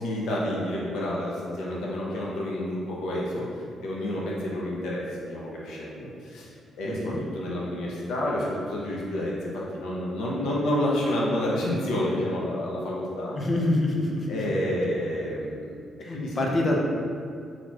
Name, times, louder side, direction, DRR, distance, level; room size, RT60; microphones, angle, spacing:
voice 1, 0.0-3.4 3.8-6.1 6.8-9.4 9.7-13.3 14.3-15.5 16.1-16.5, left 1 dB, 80° left, -4 dB, 0.6 m, -29 dB
voice 2, 6.8-7.2 13.3-14.3 16.0-16.8, left 1 dB, 25° left, -1 dB, 0.4 m, -26 dB
4.0 x 2.9 x 2.3 m, 2.3 s
cardioid pair, 160°, 0 cm